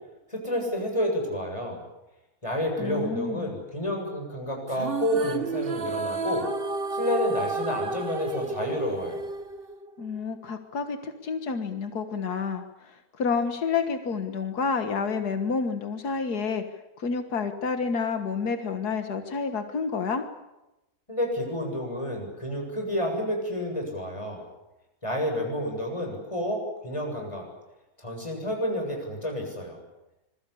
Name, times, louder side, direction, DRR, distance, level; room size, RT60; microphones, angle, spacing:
voice 1, 0.3-1.8 2.4-6.5 6.9-9.2 21.1-24.5 25.0-27.5 28.0-29.8, equal, 20° left, 2 dB, 7.8 m, -30 dB
voice 2, 2.8-3.5 10.0-16.6 17.0-20.2, left 5 dB, 90° left, 7 dB, 2.1 m, -29 dB
sound 1, 4.7-10.2, right 3 dB, 40° right, 1.3 m, -32 dB
26.5 x 22.0 x 8.6 m, 0.97 s
omnidirectional pair, 1.6 m